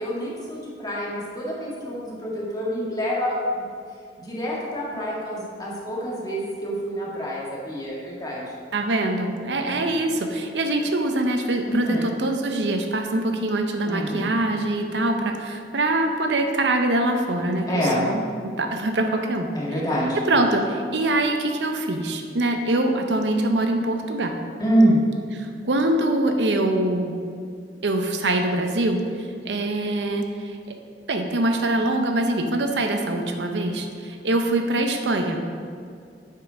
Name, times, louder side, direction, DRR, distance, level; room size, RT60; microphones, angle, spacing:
voice 1, 0.0-3.6 4.2-8.5 9.5-9.8 11.7-12.1 13.9-14.3 17.7-18.0 19.5-20.2 24.6-25.0, equal, 20° left, -5 dB, 1.7 m, -26 dB
voice 2, 8.7-19.5 20.3-24.3 25.4-27.1 27.8-30.6 31.1-35.4, right 2 dB, 80° right, 4 dB, 0.7 m, -24 dB
7.5 x 5.6 x 5.1 m, 2.3 s
head